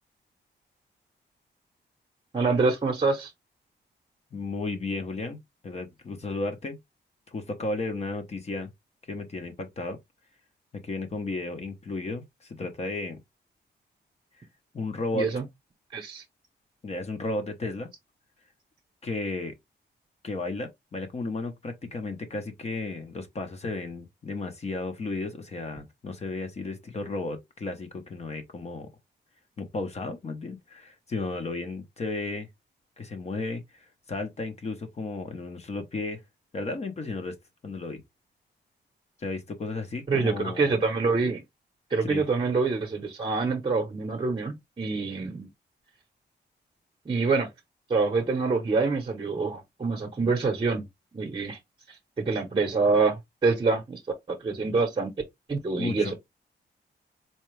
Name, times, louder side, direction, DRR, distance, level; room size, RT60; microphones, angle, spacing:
voice 1, 2.3-3.3 15.1-15.4 15.9-16.2 40.1-41.4 41.9-45.5 47.1-47.5 47.9-50.8 51.1-51.6 52.2-54.0 54.3-55.1 55.5-56.1, right 4 dB, 30° right, 0.8 m, -26 dB
voice 2, 4.3-6.8 7.3-8.7 9.1-10.0 10.8-13.2 14.7-15.3 16.8-17.9 19.0-19.5 20.2-28.9 29.6-32.5 33.0-36.2 36.5-37.4 37.6-38.0 39.2-40.8 41.2-41.3 42.0-42.2 55.8-56.1, left 3 dB, 35° left, 0.8 m, -34 dB
4.3 x 2.3 x 3.2 m
wide cardioid pair, 145°, 18 cm